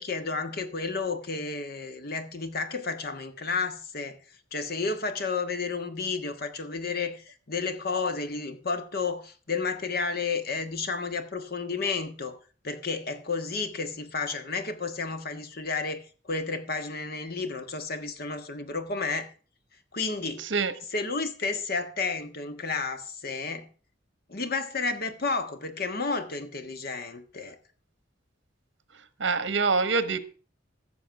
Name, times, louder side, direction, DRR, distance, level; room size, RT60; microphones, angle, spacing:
voice 1, 0.0-4.2 4.5-12.4 12.6-19.3 19.9-20.4 20.9-23.7 24.3-27.6, left 4 dB, 55° left, 1.4 m, -31 dB
voice 2, 29.2-30.2, right 4 dB, 75° right, 1.2 m, -25 dB
14.5 x 7.0 x 5.8 m
head